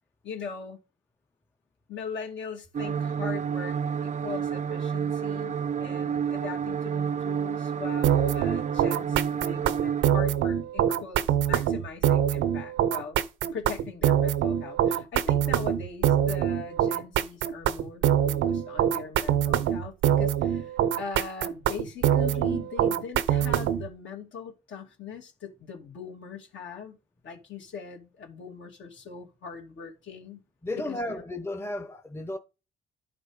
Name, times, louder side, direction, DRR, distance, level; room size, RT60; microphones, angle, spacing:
voice 1, 0.2-0.8 1.9-13.2 13.5-27.0 27.2-30.4 30.7-31.2, left 5 dB, 70° left, 2.6 m, -41 dB
sound 1, 2.7-10.0, right 7 dB, 35° right, 0.6 m, -30 dB
sound 2, 8.0-23.9, right 10 dB, 80° right, 0.8 m, -24 dB
voice 2, 30.6-32.4, left 1 dB, 10° left, 0.8 m, -33 dB
11.5 x 5.1 x 4.9 m
cardioid pair, 90°, 20 cm